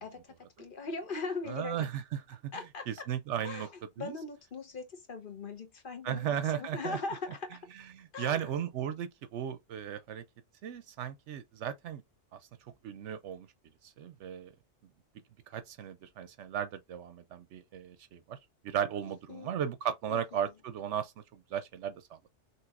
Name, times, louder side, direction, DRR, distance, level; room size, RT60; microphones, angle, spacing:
voice 1, 0.0-1.9 2.5-3.1 3.4-7.6 8.1-8.5 19.1-19.5 20.1-20.5, left 4 dB, 45° left, 1.2 m, -40 dB
voice 2, 1.5-2.4 2.9-3.7 4.0-4.1 6.0-7.0 7.9-10.2 10.6-12.0 12.3-12.4 12.8-13.5 13.8-14.5 15.5-18.4 18.6-22.2, right 9 dB, 75° right, 0.9 m, -36 dB
5.9 x 2.9 x 2.4 m
omnidirectional pair, 1.3 m